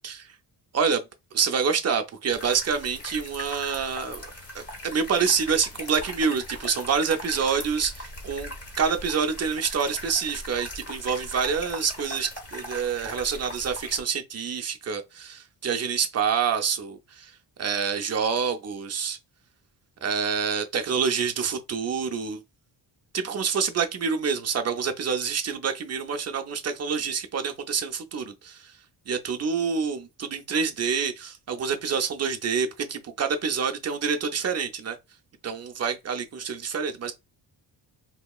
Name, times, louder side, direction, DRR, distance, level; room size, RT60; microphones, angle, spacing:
voice 1, 0.7-1.0 1.3-17.3 17.6-19.2 20.0-22.4 23.1-28.8 29.1-35.0 35.4-37.1, right 6 dB, 40° right, 0.4 m, -27 dB
sound 1, 2.3-14.0, left 1 dB, 35° left, 1.2 m, -40 dB
3.7 x 2.8 x 2.3 m
wide cardioid pair, 175°, 44 cm